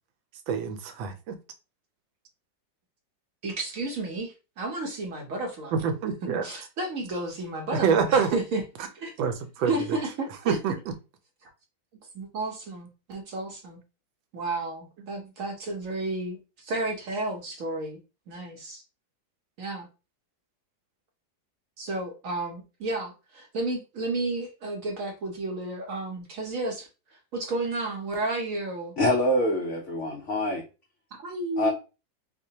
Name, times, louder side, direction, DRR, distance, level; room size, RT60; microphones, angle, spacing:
voice 1, 0.5-1.4 5.7-6.5 7.7-8.4 9.2-9.7 10.5-10.8, right 6 dB, 80° right, 1.4 m, -26 dB
voice 2, 3.4-5.8 6.4-8.6 8.9-9.1 9.6-10.6 11.4-11.5 12.1-13.8 14.3-18.0 18.3-18.8 19.6-19.9 21.8-28.9 31.2-31.7, right 2 dB, 60° right, 0.8 m, -32 dB
voice 3, 29.0-30.6 31.6-31.7, left 1 dB, 90° left, 0.6 m, -25 dB
4.7 x 2.2 x 2.7 m
omnidirectional pair, 2.1 m